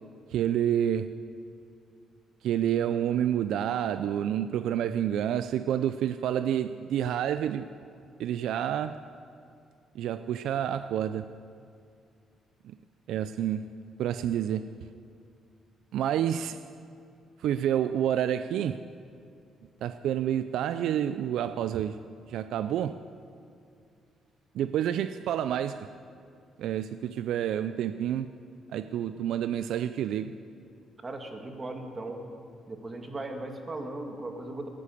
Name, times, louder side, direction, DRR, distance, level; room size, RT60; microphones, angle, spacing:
voice 1, 0.3-1.1 2.4-7.7 8.2-9.0 9.9-11.3 12.6-12.8 13.1-13.7 14.0-14.7 15.9-16.6 17.4-18.9 19.8-23.0 24.5-25.9 26.6-28.3 28.7-30.4, right 10 dB, 80° right, 0.4 m, -29 dB
voice 2, 31.0-32.2 32.7-34.7, right 2 dB, 30° right, 2.1 m, -37 dB
16.0 x 9.8 x 8.4 m
cardioid pair, 90°, 0 cm